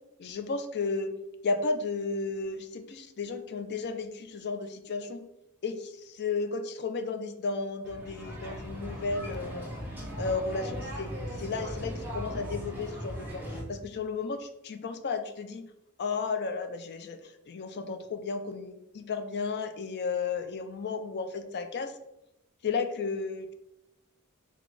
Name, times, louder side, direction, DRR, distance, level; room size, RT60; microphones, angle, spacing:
voice 1, 0.2-1.1 1.4-5.2 5.6-9.7 10.2-11.1 11.4-15.6 16.0-21.9 22.6-23.5, left 4 dB, 50° left, 8 dB, 0.5 m, -33 dB
sound 1, 7.8-13.6, equal, 10° right, 1.1 m, -38 dB
4.0 x 2.8 x 4.7 m, 0.87 s
head